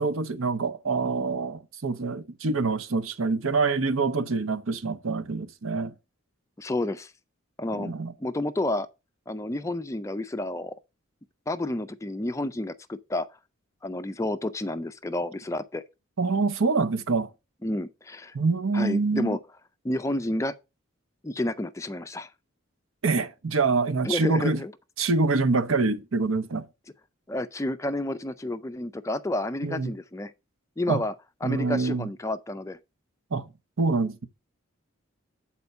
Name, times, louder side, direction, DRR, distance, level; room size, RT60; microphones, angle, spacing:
voice 1, 0.0-5.9 7.7-8.1 16.2-17.3 18.3-19.4 23.0-24.6 25.0-26.6 29.6-29.9 30.9-31.0 31.4-32.1 33.3-33.5 33.8-34.3, right 3 dB, 75° right, 0.7 m, -25 dB
voice 2, 6.6-7.1 7.6-7.9 8.2-8.9 9.3-10.8 11.5-13.3 13.8-15.8 17.6-18.4 18.7-19.4 19.8-20.5 21.2-22.3 24.0-24.7 27.3-30.3 30.8-31.1 31.4-32.8, left 1 dB, 15° left, 0.3 m, -30 dB
8.2 x 4.3 x 5.4 m
head